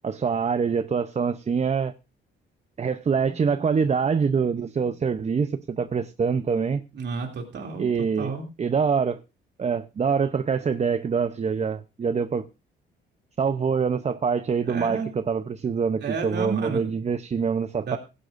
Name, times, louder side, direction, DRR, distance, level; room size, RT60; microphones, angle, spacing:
voice 1, 0.0-1.9 2.8-6.8 7.8-8.3 8.6-9.2 9.6-12.4 13.4-18.0, right 6 dB, 35° right, 0.7 m, -25 dB
voice 2, 6.9-8.4 14.6-15.1 16.0-16.9 17.9-18.0, right 5 dB, 60° right, 2.8 m, -31 dB
16.5 x 16.0 x 2.6 m
cardioid pair, 90°, 20 cm